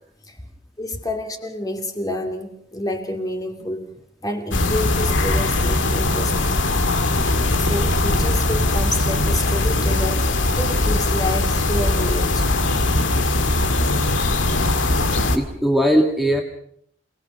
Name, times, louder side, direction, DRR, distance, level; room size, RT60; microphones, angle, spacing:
voice 1, 0.8-3.9 4.2-6.4 7.3-10.3 10.6-12.5, left 1 dB, 20° left, 4 dB, 2.6 m, -28 dB
sound 1, 4.5-15.4, left 2 dB, 80° left, 2.0 m, -20 dB
voice 2, 14.9-16.4, equal, ahead, 0 dB, 2.0 m, -20 dB
29.0 x 19.5 x 5.5 m, 0.67 s
head